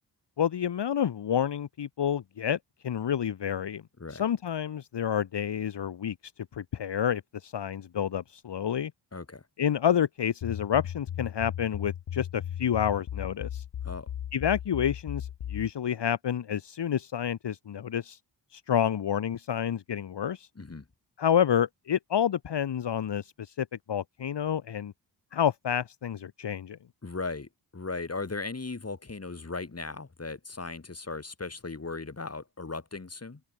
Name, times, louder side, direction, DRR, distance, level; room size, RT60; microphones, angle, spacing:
voice 1, 0.4-2.6 2.8-3.8 4.2-6.1 6.5-8.9 9.6-13.6 14.3-18.2 18.5-20.5 21.2-24.9 25.3-26.8, left 9 dB, 60° left, 1.3 m, -29 dB
voice 2, 9.1-9.4 13.8-14.1 20.6-20.9 27.0-33.4, left 3 dB, 30° left, 3.5 m, -37 dB
sound 1, 10.4-15.7, left 10 dB, 85° left, 2.6 m, -36 dB
cardioid pair, 50°, 46 cm